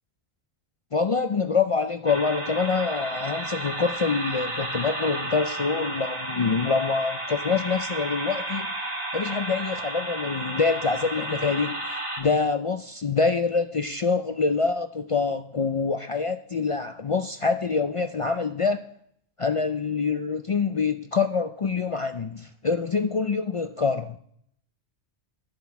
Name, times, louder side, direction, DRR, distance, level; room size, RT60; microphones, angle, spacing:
voice 1, 0.9-8.7 9.1-18.9 19.4-24.2, left 4 dB, 60° left, 0.3 m, -25 dB
sound 1, 2.1-12.2, right 1 dB, 35° right, 2.1 m, -32 dB
10.5 x 7.8 x 5.8 m
omnidirectional pair, 1.2 m